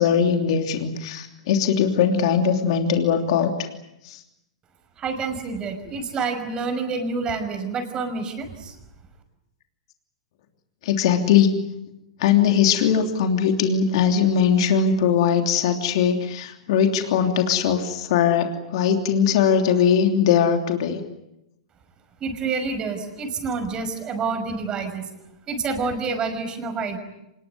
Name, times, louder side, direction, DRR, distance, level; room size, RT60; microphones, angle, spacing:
voice 1, 0.0-3.7 4.0-4.2 10.8-11.5 12.2-21.0, left 7 dB, 60° left, 5 dB, 3.1 m, -20 dB
voice 2, 5.0-8.7 22.2-25.1 25.5-27.0, right 4 dB, 25° right, 7 dB, 5.6 m, -28 dB
26.0 x 21.0 x 9.5 m, 0.88 s
hypercardioid pair, 130°, 3 cm